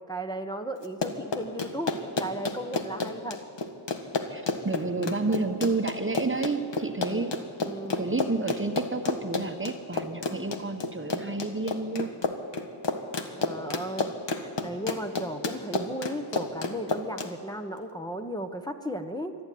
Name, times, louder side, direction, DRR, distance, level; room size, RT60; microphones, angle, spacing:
voice 1, 0.1-3.4 7.6-8.0 13.4-19.4, right 1 dB, 10° left, 3 dB, 1.2 m, -35 dB
Run, 0.8-17.3, left 3 dB, 70° left, 1.6 m, -30 dB
voice 2, 4.3-12.1, right 3 dB, 25° right, 7 dB, 1.2 m, -30 dB
23.0 x 12.5 x 9.4 m, 2.3 s
wide cardioid pair, 70°, 44 cm